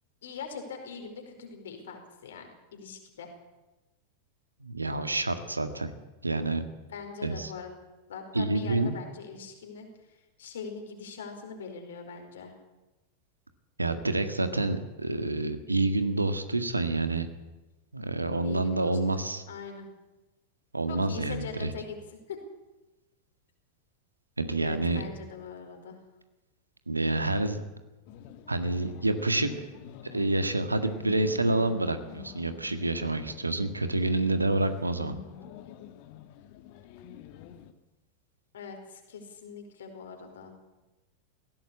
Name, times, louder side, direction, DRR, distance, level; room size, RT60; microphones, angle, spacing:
voice 1, 0.2-3.3 6.9-7.7 8.1-12.5 18.4-19.9 20.9-22.0 22.3-22.4 24.6-26.0 38.5-40.6, left 5 dB, 60° left, 4 dB, 4.7 m, -42 dB
voice 2, 4.6-5.9 6.2-6.6 7.2-7.5 8.3-9.0 13.8-17.3 17.9-19.4 20.7-21.7 24.4-25.0 26.9-27.6 28.5-29.5 30.1-35.1, right 2 dB, 80° right, 9 dB, 1.8 m, -28 dB
sound 1, 28.1-37.7, left 10 dB, 45° left, 1.6 m, -47 dB
19.5 x 16.5 x 8.5 m, 1.1 s
figure-of-eight pair, 90°, 0 cm